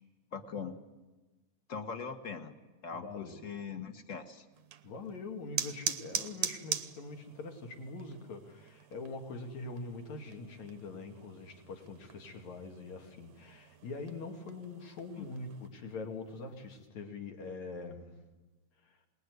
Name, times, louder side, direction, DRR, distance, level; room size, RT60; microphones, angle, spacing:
voice 1, 0.3-0.8 1.7-2.6 2.8-4.4 15.2-15.3, left 5 dB, 40° left, 7 dB, 1.3 m, -41 dB
voice 2, 2.9-3.4 4.8-18.1 18.8-19.0, left 3 dB, 70° left, 3 dB, 3.8 m, -43 dB
sound 1, 4.5-15.7, right 9 dB, 75° right, 2.2 m, -43 dB
26.5 x 20.0 x 9.6 m, 1.2 s
omnidirectional pair, 3.3 m